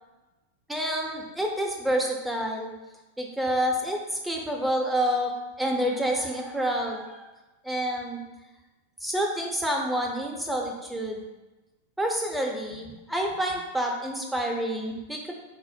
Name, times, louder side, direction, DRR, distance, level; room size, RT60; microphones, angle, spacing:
voice 1, 0.7-2.7 3.2-4.0 4.2-5.3 5.6-7.3 7.6-8.2 9.0-11.2 12.0-15.3, equal, 5° right, 1 dB, 0.6 m, -28 dB
4.2 x 2.1 x 4.2 m, 1.1 s
figure-of-eight pair, 90°, 0 cm